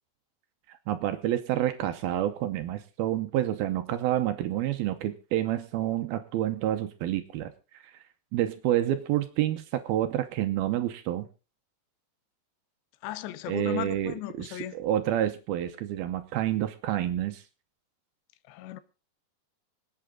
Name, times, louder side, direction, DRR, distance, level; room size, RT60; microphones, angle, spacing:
voice 1, 0.9-7.5 7.8-7.9 8.3-11.3 13.5-17.4, right 12 dB, 75° right, 2.4 m, -28 dB
voice 2, 13.0-14.8 18.5-18.8, left 14 dB, 85° left, 3.1 m, -36 dB
26.0 x 8.6 x 3.7 m
omnidirectional pair, 5.0 m